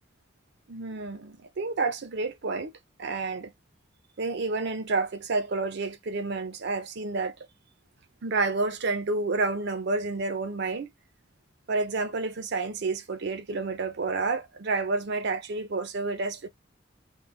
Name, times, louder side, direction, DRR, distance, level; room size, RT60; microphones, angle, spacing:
voice 1, 0.7-2.7 3.0-3.5 4.2-7.3 8.2-10.9 11.7-16.5, right 3 dB, 60° right, 0.6 m, -29 dB
3.8 x 2.1 x 3.3 m
head